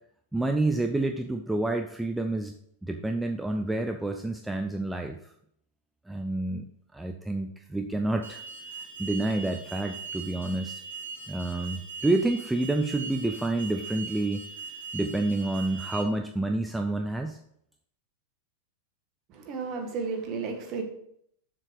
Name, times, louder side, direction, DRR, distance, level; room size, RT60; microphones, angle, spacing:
voice 1, 0.3-2.5 2.8-5.2 6.1-6.7 6.9-8.4 9.0-10.8 11.3-14.5 14.9-17.4, right 2 dB, 5° right, 5 dB, 0.6 m, -28 dB
Alarm, 8.2-16.0, right 5 dB, 70° right, 2.7 m, -40 dB
voice 2, 19.3-20.8, right 5 dB, 35° right, 4 dB, 1.8 m, -33 dB
7.3 x 6.6 x 4.8 m, 0.70 s
figure-of-eight pair, 90°, 0 cm